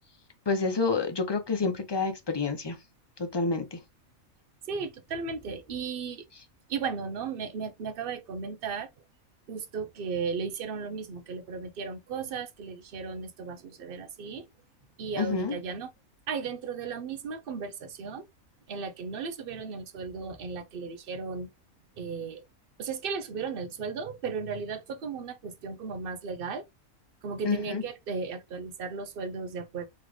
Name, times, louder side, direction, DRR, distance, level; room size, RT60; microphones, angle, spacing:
voice 1, 0.5-2.8 3.2-3.8 15.2-15.5 27.4-27.8, left 4 dB, 30° left, 0.5 m, -28 dB
voice 2, 4.7-6.2 6.7-8.9 9.5-14.5 15.0-15.9 16.3-18.3 18.7-21.5 22.0-22.4 22.8-26.7 27.2-29.9, right 5 dB, 50° right, 0.8 m, -35 dB
3.9 x 3.2 x 3.1 m
omnidirectional pair, 1.4 m